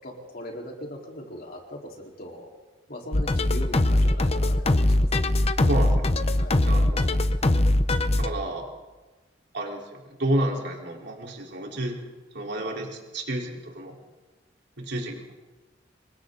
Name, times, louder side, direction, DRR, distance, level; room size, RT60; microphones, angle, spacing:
voice 1, 0.0-2.5 2.9-5.3 6.3-6.6, left 1 dB, 50° left, -1 dB, 4.4 m, -40 dB
sound 1, 3.1-8.3, left 1 dB, 35° left, 0.9 m, -21 dB
voice 2, 5.6-6.1 6.7-7.1 8.2-8.7 9.5-12.0 12.3-14.0 14.8-15.3, right 1 dB, 65° right, -1 dB, 4.4 m, -30 dB
28.5 x 24.0 x 4.1 m, 1.2 s
head